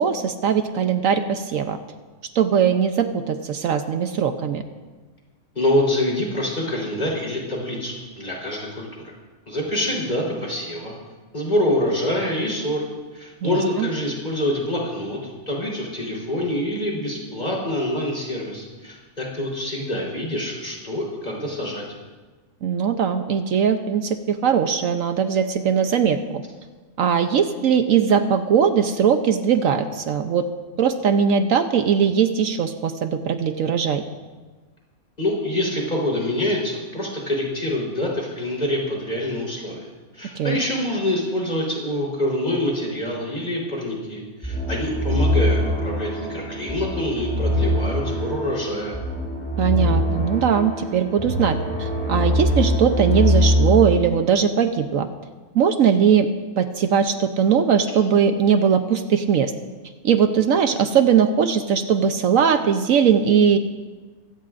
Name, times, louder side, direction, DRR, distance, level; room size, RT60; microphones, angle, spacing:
voice 1, 0.0-1.8 2.3-4.6 13.4-13.9 22.6-26.4 27.0-30.5 30.8-34.0 40.4-40.6 49.6-55.1 55.5-56.3 56.6-59.5 60.0-63.6, right 7 dB, 70° right, 8 dB, 1.1 m, -20 dB
voice 2, 5.6-9.1 9.5-10.9 11.3-12.8 13.1-21.8 35.2-39.9 40.1-49.0, left 1 dB, 30° left, -3 dB, 4.2 m, -26 dB
sound 1, 44.4-53.9, left 1 dB, 5° left, 6.2 m, -23 dB
23.5 x 17.0 x 2.6 m, 1.3 s
omnidirectional pair, 1.5 m